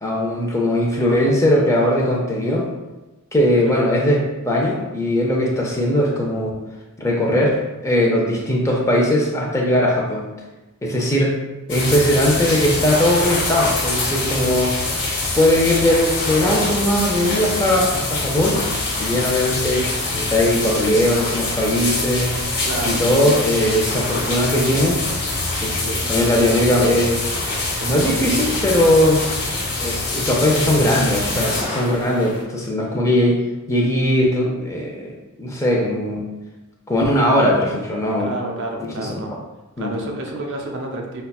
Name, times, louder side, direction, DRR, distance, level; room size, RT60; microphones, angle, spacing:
voice 1, 0.0-2.7 3.3-6.5 7.0-10.3 10.8-11.4 11.7-14.7 15.3-18.6 19.0-19.9 20.1-22.3 22.8-25.0 25.5-25.8 26.1-27.2 27.9-29.3 29.8-33.4 33.7-36.2 36.9-38.3 38.8-39.2 39.8-40.0, left 1 dB, 15° left, -2 dB, 0.5 m, -19 dB
sound 1, 11.7-31.6, left 2 dB, 80° left, 1.3 m, -25 dB
sound 2, 12.9-32.4, left 2 dB, 45° left, 0.8 m, -34 dB
voice 2, 22.6-23.4 25.8-26.0 27.8-28.6 29.4-29.5 38.2-39.4 39.8-41.2, right 2 dB, 60° right, 1 dB, 0.6 m, -30 dB
5.4 x 2.2 x 2.3 m, 1.1 s
head